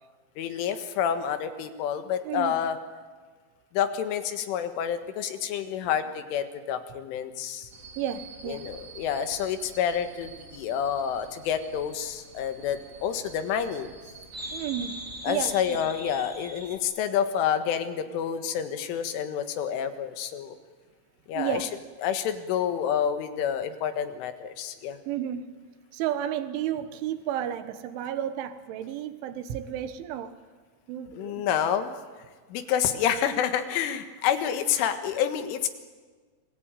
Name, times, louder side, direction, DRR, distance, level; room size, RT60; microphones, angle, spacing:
voice 1, 0.4-2.8 3.7-7.7 8.5-13.9 15.2-20.6 21.3-21.7 22.0-25.0 31.2-32.0 32.5-35.7, left 8 dB, 75° left, 8 dB, 4.0 m, -28 dB
voice 2, 2.3-2.6 8.0-8.7 14.5-15.0 15.3-15.8 21.4-21.7 25.1-25.6 25.9-30.4 30.9-31.4, right 10 dB, 75° right, 11 dB, 3.6 m, -32 dB
sound 1, 7.7-16.8, right 2 dB, 40° right, 1.1 m, -44 dB
28.5 x 21.5 x 9.1 m, 1.4 s
omnidirectional pair, 5.8 m